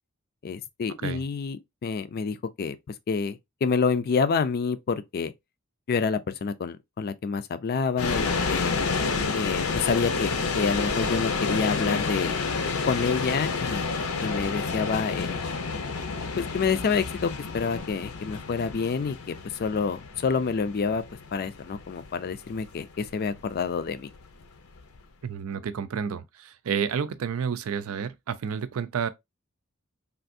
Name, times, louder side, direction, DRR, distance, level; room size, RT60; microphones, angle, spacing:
voice 1, 0.4-2.8 3.1-5.3 5.9-8.7 9.3-12.4 12.9-15.4 16.4-19.3 19.6-21.0 21.3-24.1, left 5 dB, 45° left, 0.4 m, -28 dB
sound 1, 8.0-25.0, left 4 dB, 80° left, 0.6 m, -30 dB
voice 2, 25.2-29.1, right 7 dB, 75° right, 0.4 m, -30 dB
3.4 x 2.5 x 2.5 m
head